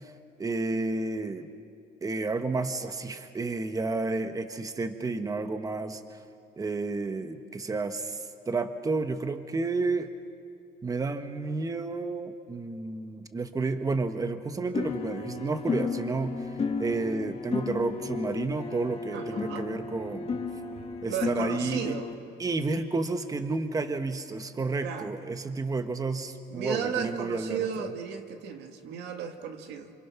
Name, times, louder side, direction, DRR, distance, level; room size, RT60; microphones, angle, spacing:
voice 1, 0.4-1.5 2.0-6.2 6.6-10.1 10.8-20.4 21.0-22.0 22.4-27.9, right 3 dB, 20° right, 8 dB, 1.2 m, -31 dB
sound 1, 14.7-22.1, left 5 dB, 35° left, 2.1 m, -33 dB
voice 2, 19.1-19.7 21.1-22.1 24.8-25.1 26.5-29.9, right 7 dB, 85° right, 6 dB, 1.8 m, -34 dB
26.5 x 26.0 x 5.9 m, 2.5 s
cardioid pair, 110°, 17 cm